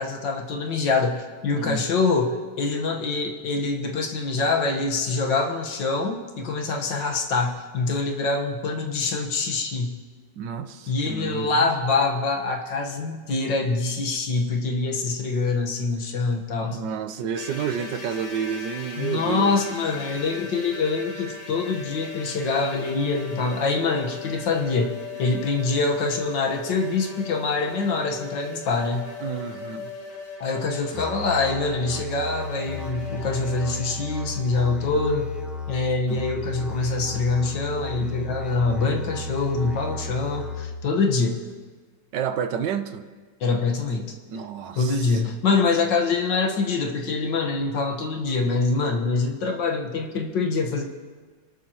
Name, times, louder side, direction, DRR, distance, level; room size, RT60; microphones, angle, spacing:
voice 1, 0.0-10.0 10.9-16.8 19.0-24.9 25.2-29.1 30.4-35.3 35.7-41.4 43.4-44.2 44.8-50.8, left 4 dB, 85° left, 2 dB, 2.1 m, -25 dB
voice 2, 1.5-1.8 10.4-11.7 16.6-19.6 29.2-29.9 42.1-43.0 44.3-45.3, right 7 dB, 75° right, 9 dB, 1.5 m, -30 dB
sound 1, 17.4-34.4, left 4 dB, 30° left, 0.8 m, -39 dB
Musical instrument, 30.9-40.9, left 1 dB, ahead, 0.8 m, -34 dB
29.0 x 12.0 x 3.0 m, 1.5 s
omnidirectional pair, 1.9 m